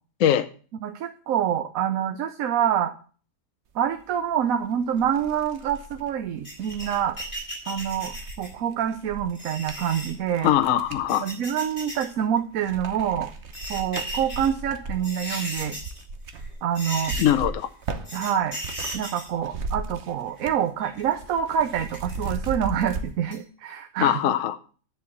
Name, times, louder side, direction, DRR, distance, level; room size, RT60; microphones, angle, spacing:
voice 1, 0.8-2.9 3.7-7.2 7.7-10.5 11.2-13.3 13.7-15.8 16.6-17.2 18.1-18.6 18.9-24.3, right 9 dB, 80° right, 4 dB, 1.2 m, -26 dB
sound 1, 4.4-4.5 4.9-11.1 11.7-12.3 12.6-19.0 19.3-20.7 20.9-23.0, right 3 dB, 55° right, 1.2 m, -37 dB
sound 2, 6.4-8.6 9.3-10.1 10.9-12.1 12.4-12.5 13.3-14.5 14.9-16.0 16.3-16.5 16.7-17.5 18.0-19.3 20.3-21.1 21.9-22.5 22.9-23.0 23.3-23.4, equal, 35° left, 4.1 m, -36 dB
voice 2, 10.4-11.3 17.2-17.7 24.0-24.6, left 11 dB, 70° left, 10 dB, 1.0 m, -21 dB
10.5 x 4.5 x 7.1 m, 0.41 s
omnidirectional pair, 1.4 m